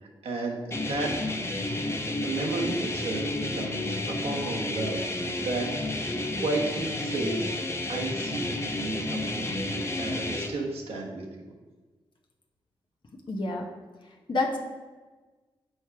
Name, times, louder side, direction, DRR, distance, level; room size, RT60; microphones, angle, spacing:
voice 1, 0.2-1.1 2.2-5.1 5.4-6.1 6.4-7.5 7.9-11.5, right 2 dB, 80° right, -1 dB, 1.3 m, -33 dB
sound 1, 0.7-10.5, left 2 dB, 25° left, 0.8 m, -31 dB
voice 2, 13.3-13.7 14.3-14.6, left 2 dB, 50° left, 0 dB, 0.9 m, -27 dB
6.4 x 4.6 x 4.6 m, 1.3 s
cardioid pair, 55°, 10 cm